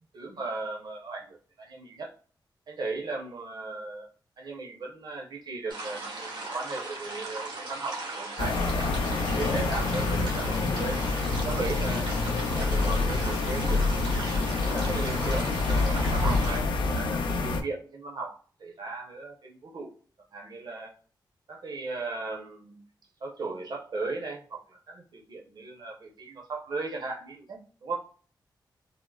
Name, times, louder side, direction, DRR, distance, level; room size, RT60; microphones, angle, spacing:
voice 1, 0.1-2.1 2.7-4.1 4.4-8.9 9.2-11.0 11.5-12.1 12.5-14.0 14.7-19.9 20.3-20.9 21.5-22.8 23.2-28.0, right 3 dB, 60° right, 0 dB, 0.7 m, -37 dB
sound 1, 5.7-16.6, right 2 dB, 85° right, 0.9 m, -38 dB
sound 2, 8.4-17.6, left 3 dB, 80° left, 0.5 m, -27 dB
3.5 x 2.0 x 2.3 m, 0.41 s
wide cardioid pair, 125°, 8 cm